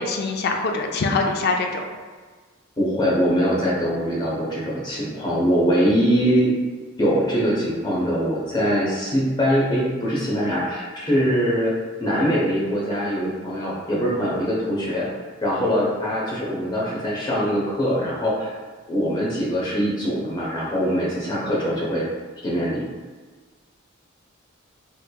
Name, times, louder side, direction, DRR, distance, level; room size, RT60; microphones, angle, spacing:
voice 1, 0.0-1.8, left 3 dB, 55° left, 3 dB, 0.4 m, -23 dB
voice 2, 2.8-6.5 7.0-11.7 12.0-15.1 15.4-18.5 18.9-22.1 22.4-22.8, equal, 20° left, -5 dB, 0.7 m, -22 dB
3.2 x 3.1 x 2.2 m, 1.4 s
head